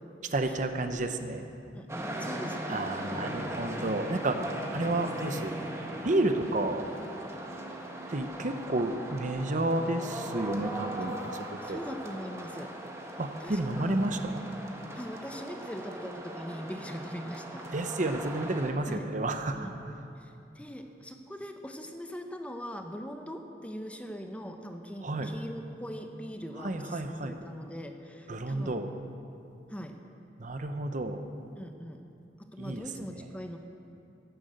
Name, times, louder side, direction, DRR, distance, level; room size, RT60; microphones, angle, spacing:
voice 1, 0.3-1.4 2.7-5.6 6.0-6.9 8.1-11.8 13.2-14.4 17.7-19.9 25.0-25.3 26.6-27.3 28.3-28.9 30.4-31.2 32.6-33.2, right 2 dB, 45° right, 7 dB, 0.8 m, -31 dB
voice 2, 1.7-2.7 3.8-4.3 11.0-11.1 11.6-12.7 13.4-14.0 14.9-17.7 18.9-19.1 19.5-19.7 20.2-28.9 29.7-30.0 31.5-32.0 32.4-33.6, equal, 5° left, 5 dB, 0.8 m, -41 dB
sound 1, 1.9-18.7, right 1 dB, 15° right, 1.4 m, -39 dB
12.0 x 11.5 x 7.8 m, 2.7 s
head